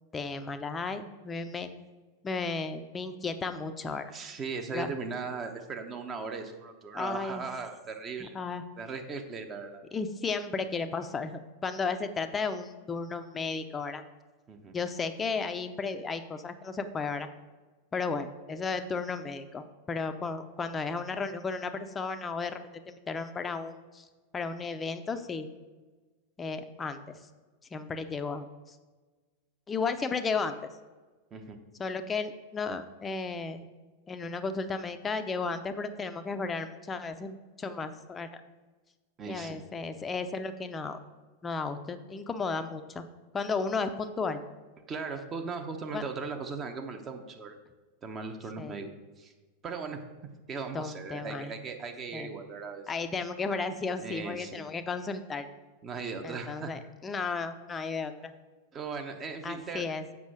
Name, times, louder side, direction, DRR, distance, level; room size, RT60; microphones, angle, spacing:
voice 1, 0.1-1.7 2.2-4.1 4.7-4.9 6.9-7.5 8.3-8.6 9.9-14.0 14.7-17.3 17.9-22.6 22.9-24.1 24.3-25.5 26.4-27.2 27.7-28.8 29.7-30.6 31.8-33.7 34.1-38.4 39.3-41.0 41.4-43.0 43.3-44.4 45.9-46.0 48.6-48.8 50.7-51.5 52.1-52.3 52.9-55.5 56.2-58.3 59.4-60.1, left 4 dB, 20° left, 9 dB, 0.6 m, -34 dB
voice 2, 4.1-8.4 8.8-9.8 14.5-14.7 31.3-31.6 39.2-39.6 44.9-47.5 48.0-48.9 49.2-49.3 49.6-50.0 50.5-52.9 54.0-54.6 55.8-56.7 58.7-59.9, right 4 dB, 25° right, 5 dB, 0.9 m, -38 dB
7.3 x 5.9 x 4.8 m, 1.3 s
figure-of-eight pair, 90°, 0 cm